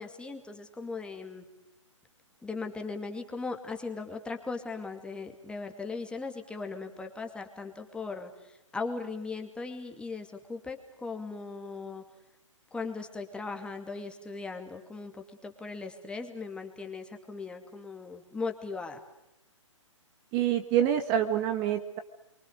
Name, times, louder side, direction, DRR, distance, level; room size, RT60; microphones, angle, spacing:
voice 1, 0.0-1.4 2.4-12.0 12.7-19.0, left 4 dB, 5° left, 4 dB, 2.5 m, -38 dB
voice 2, 20.3-22.0, right 10 dB, 30° right, 8 dB, 1.7 m, -26 dB
29.0 x 24.5 x 6.6 m, 0.86 s
figure-of-eight pair, 130°, 17 cm